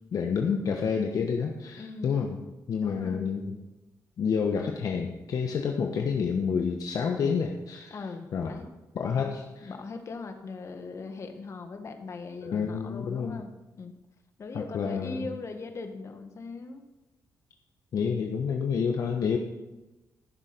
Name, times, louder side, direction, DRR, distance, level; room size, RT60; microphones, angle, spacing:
voice 1, 0.1-2.4 2.7-3.5 4.2-7.9 8.3-8.5 8.9-9.4 12.4-13.4 14.5-15.3 17.9-19.4, left 6 dB, 65° left, 3 dB, 1.2 m, -28 dB
voice 2, 1.8-2.3 2.8-3.3 7.9-8.7 9.2-13.5 13.8-13.9 14.4-16.8, left 3 dB, 50° left, 6 dB, 1.7 m, -40 dB
14.5 x 7.4 x 5.3 m, 1.0 s
cardioid pair, 90°, 6 cm